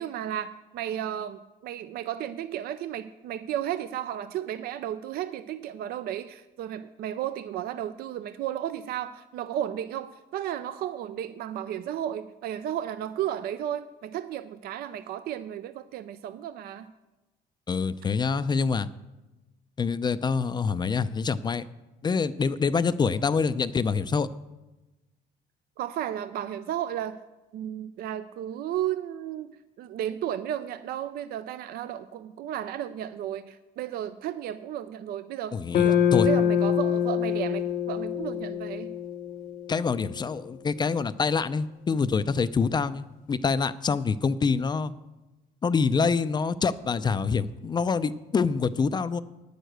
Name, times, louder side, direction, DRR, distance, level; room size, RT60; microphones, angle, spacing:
voice 1, 0.0-16.9 25.8-27.2 27.5-38.9, right 11 dB, 65° right, 13 dB, 0.5 m, -33 dB
voice 2, 17.7-18.9 19.8-21.7 22.0-24.3 35.5-36.3 39.7-44.9 45.6-49.2, left 5 dB, 25° left, 14 dB, 0.4 m, -26 dB
sound 1, 35.7-40.1, left 9 dB, 55° left, 0.9 m, -25 dB
9.9 x 6.6 x 7.9 m, 1.1 s
cardioid pair, 110°, 17 cm